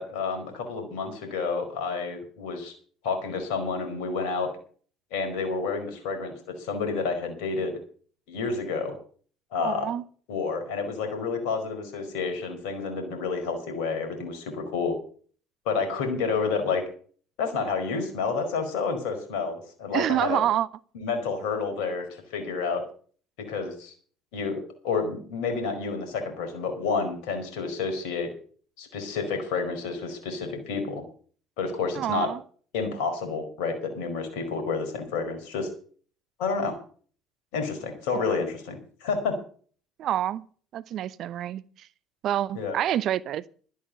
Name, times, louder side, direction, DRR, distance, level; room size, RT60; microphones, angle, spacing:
voice 1, 0.0-2.7 3.0-4.5 5.1-7.8 8.3-9.0 9.5-9.9 10.3-14.9 15.6-16.8 17.4-20.4 20.9-22.8 23.5-23.9 24.3-28.3 28.8-31.0 31.6-32.3 32.7-35.7 36.4-36.7 37.5-39.3 42.5-42.7, left 4 dB, 65° left, 4.7 m, -29 dB
voice 2, 9.6-10.0 19.9-20.7 31.9-32.4 38.2-38.3 40.0-40.4 40.7-41.9 42.2-43.4, right 11 dB, 55° right, 0.7 m, -27 dB
12.5 x 9.8 x 6.7 m
figure-of-eight pair, 60°, 0 cm